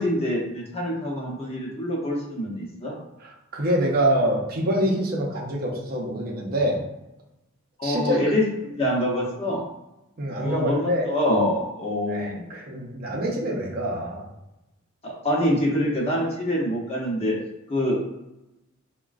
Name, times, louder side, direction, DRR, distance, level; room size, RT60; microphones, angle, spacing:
voice 1, 0.0-2.9 7.8-9.6 10.4-12.4 15.0-17.3 17.7-18.0, left 1 dB, 30° left, -3 dB, 0.8 m, -25 dB
voice 2, 3.2-6.8 7.8-8.2 10.2-11.1 12.1-14.3, right 1 dB, 50° right, -2 dB, 0.7 m, -25 dB
3.6 x 2.2 x 2.4 m, 0.94 s
head